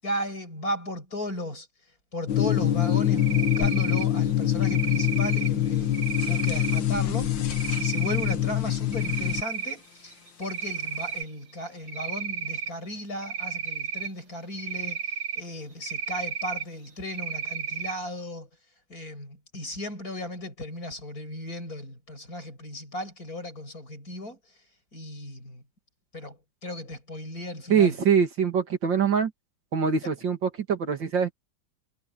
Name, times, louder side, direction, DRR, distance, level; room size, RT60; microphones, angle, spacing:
voice 1, 0.0-1.7 2.1-18.5 18.9-24.4 24.9-25.6 26.1-28.0, left 1 dB, 50° left, 7.9 m, -36 dB
sound 1, 2.3-9.4, left 11 dB, 75° left, 2.1 m, -25 dB
Cricket, 3.2-4.1 4.6-5.5 5.9-6.8 7.5-8.3 8.8-9.7 10.1-11.3 11.9-12.7 13.2-14.1 14.6-15.4 15.8-16.6 17.1-17.9, right 7 dB, 60° right, 3.5 m, -33 dB
voice 2, 27.7-29.3 29.7-31.3, right 7 dB, 75° right, 2.9 m, -23 dB
omnidirectional pair, 2.0 m